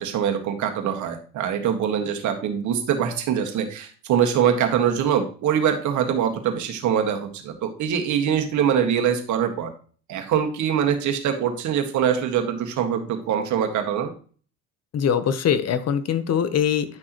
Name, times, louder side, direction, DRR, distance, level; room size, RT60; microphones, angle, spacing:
voice 1, 0.0-9.7 10.1-14.1, right 8 dB, 60° right, 5 dB, 1.8 m, -23 dB
voice 2, 14.9-17.0, left 8 dB, 50° left, 12 dB, 1.0 m, -22 dB
10.5 x 6.2 x 3.0 m, 0.41 s
hypercardioid pair, 75°, 33 cm